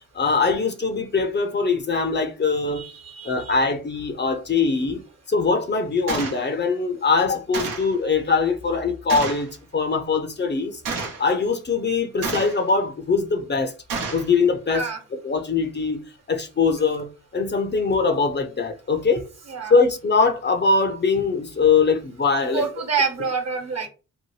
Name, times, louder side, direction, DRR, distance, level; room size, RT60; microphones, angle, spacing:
voice 1, 0.1-2.9 3.2-5.0 5.3-10.8 11.2-13.7 14.1-16.0 16.3-19.2 19.7-22.7, left 4 dB, 30° left, 0.6 m, -22 dB
voice 2, 2.7-3.5 14.7-15.0 19.5-19.7 22.5-23.9, right 5 dB, 50° right, 1.1 m, -27 dB
Gunshot gunfire, 6.1-6.4 7.5-7.9 9.1-9.5 10.8-11.3 12.2-12.7 13.9-14.3, right 4 dB, 80° right, 0.8 m, -29 dB
2.8 x 2.1 x 3.1 m
supercardioid pair, 50°, 33 cm